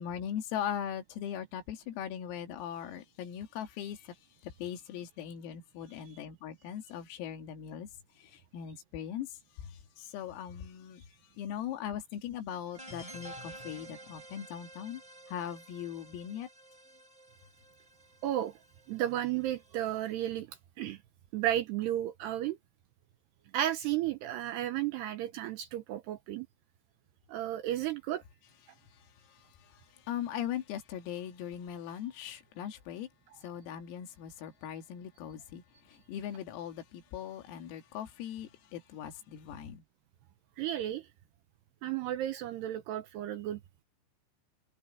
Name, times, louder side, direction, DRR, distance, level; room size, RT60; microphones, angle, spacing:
voice 1, 0.0-4.1 4.4-7.9 8.5-9.3 10.0-11.0 11.4-15.0 15.3-16.5 30.1-33.1 33.4-35.6 36.1-39.8, left 9 dB, 85° left, 5.0 m, -39 dB
sound 1, 12.7-20.1, right 1 dB, 5° right, 4.4 m, -51 dB
voice 2, 18.2-18.5 18.9-20.5 20.8-21.0 21.3-22.6 23.5-26.5 27.3-28.2 40.6-41.0 41.8-43.8, right 12 dB, 80° right, 2.4 m, -33 dB
omnidirectional pair, 5.9 m